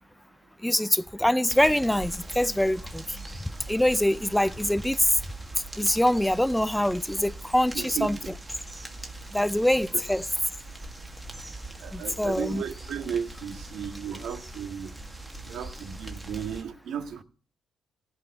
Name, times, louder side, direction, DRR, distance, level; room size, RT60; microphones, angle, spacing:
voice 1, 0.6-3.2 3.7-5.0 5.8-8.2 9.3-10.2 11.9-12.6, left 1 dB, 5° left, 0.5 m, -24 dB
sound 1, 1.5-16.6, right 2 dB, 10° right, 2.0 m, -42 dB
voice 2, 7.7-8.3 11.8-14.9 15.4-17.2, right 8 dB, 70° right, 1.7 m, -35 dB
16.0 x 5.4 x 7.9 m
cardioid pair, 90°, 0 cm